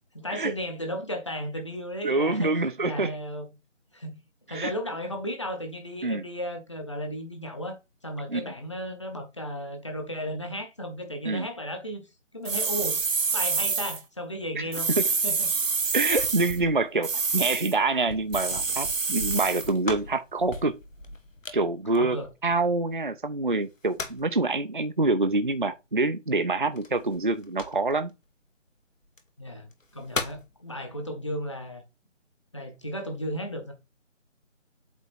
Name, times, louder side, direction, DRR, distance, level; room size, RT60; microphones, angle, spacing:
voice 1, 0.1-2.5 2.8-3.5 3.9-4.2 4.5-7.8 8.0-12.1 12.3-13.0 13.3-14.9 15.2-15.5 21.9-22.3 29.4-29.7 29.9-31.8 32.5-33.7, equal, 25° left, 1.0 m, -34 dB
voice 2, 2.0-3.1 4.5-4.7 6.0-6.2 8.3-8.4 11.2-11.5 14.5-14.7 15.0-15.1 15.9-20.8 21.5-28.1, right 3 dB, 45° right, 0.5 m, -26 dB
sound 1, 12.5-14.0 14.7-16.6 17.0-17.7 18.3-19.7, right 5 dB, 85° right, 1.1 m, -27 dB
sound 2, 15.5-22.9 23.6-24.4 26.8-28.1 29.0-29.2 29.7-30.5, left 3 dB, 90° left, 1.7 m, -39 dB
8.2 x 3.6 x 4.3 m
figure-of-eight pair, 170°, 38 cm